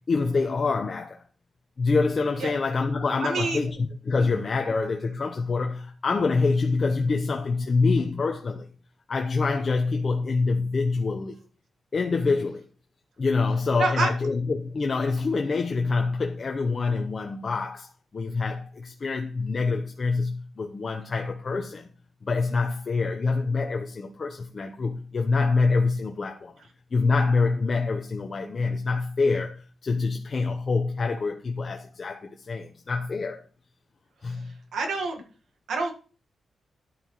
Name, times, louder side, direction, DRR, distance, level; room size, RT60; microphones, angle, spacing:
voice 1, 0.1-1.2 1.8-8.7 9.1-11.3 11.9-12.6 13.2-17.9 18.1-21.9 22.2-26.5 26.9-33.4 34.2-34.5, left 4 dB, 45° left, 0.9 m, -26 dB
voice 2, 3.2-3.6 13.8-14.1 34.3-34.4 34.7-35.2 35.7-35.9, right 3 dB, 85° right, 1.6 m, -27 dB
10.5 x 8.7 x 3.1 m
cardioid pair, 100°, 0 cm